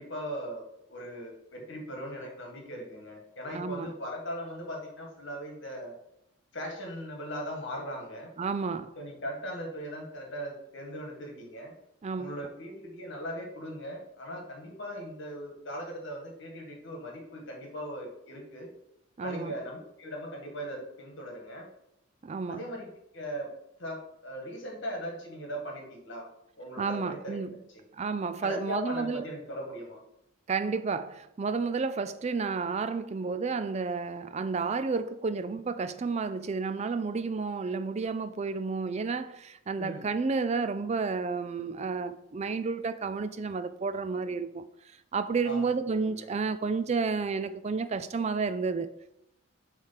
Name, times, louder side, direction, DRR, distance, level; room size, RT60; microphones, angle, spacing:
voice 1, 0.0-5.9 6.5-8.3 8.9-11.7 12.2-18.7 19.2-21.7 22.5-22.9 23.1-23.5 23.8-26.2 26.6-27.4 28.4-30.0 39.8-40.1 45.4-45.7 46.1-46.3, equal, 55° left, 1.7 m, -39 dB
voice 2, 3.5-3.9 8.4-8.9 12.0-12.3 19.2-19.5 22.2-22.6 26.8-27.6 28.0-29.2 30.5-44.7 45.1-48.9, right 4 dB, 30° right, 0.3 m, -31 dB
7.4 x 3.3 x 5.8 m
head